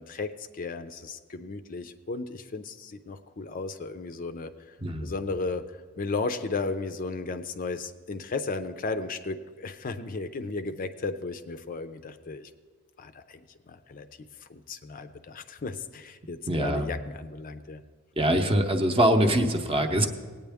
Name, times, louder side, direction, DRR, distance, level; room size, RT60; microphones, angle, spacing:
voice 1, 0.0-4.8 5.0-5.6 6.0-12.5 13.0-13.4 13.7-17.8, left 3 dB, 40° left, 10 dB, 0.5 m, -35 dB
voice 2, 16.5-16.9 18.2-20.1, right 1 dB, 25° right, 5 dB, 0.7 m, -23 dB
18.5 x 8.8 x 3.5 m, 1.5 s
head